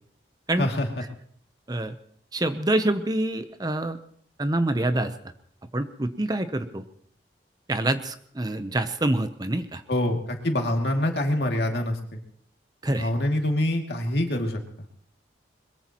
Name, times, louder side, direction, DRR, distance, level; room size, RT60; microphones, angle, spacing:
voice 1, 0.6-0.9 9.9-12.2 12.9-14.6, left 1 dB, 65° left, 2 dB, 2.5 m, -25 dB
voice 2, 2.3-4.0 4.4-5.1 5.7-6.8 7.7-9.8 12.8-13.1, right 1 dB, 20° right, 10 dB, 0.7 m, -26 dB
22.0 x 21.5 x 3.0 m, 0.63 s
head